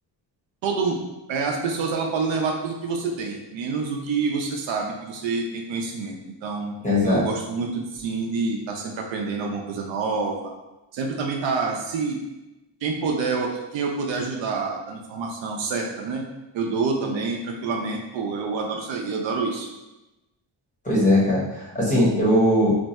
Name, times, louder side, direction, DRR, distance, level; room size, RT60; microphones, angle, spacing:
voice 1, 0.6-1.0 1.3-6.7 7.0-10.5 10.9-12.2 12.8-16.2 16.5-19.7, right 4 dB, 65° right, 1 dB, 0.6 m, -27 dB
voice 2, 6.8-7.2 20.8-22.8, left 1 dB, 15° left, -6 dB, 0.7 m, -19 dB
2.6 x 2.2 x 4.0 m, 1.0 s
cardioid pair, 160°, 49 cm